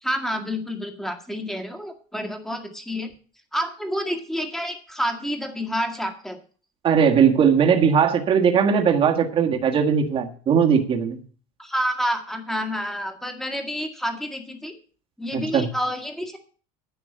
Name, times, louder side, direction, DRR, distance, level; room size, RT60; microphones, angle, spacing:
voice 1, 0.0-3.1 3.5-6.4 11.6-14.7 15.2-16.4, equal, ahead, 5 dB, 1.8 m, -29 dB
voice 2, 6.8-11.2 15.3-15.7, right 7 dB, 35° right, 3 dB, 1.6 m, -19 dB
10.5 x 6.0 x 8.7 m, 0.41 s
cardioid pair, 135°, 16 cm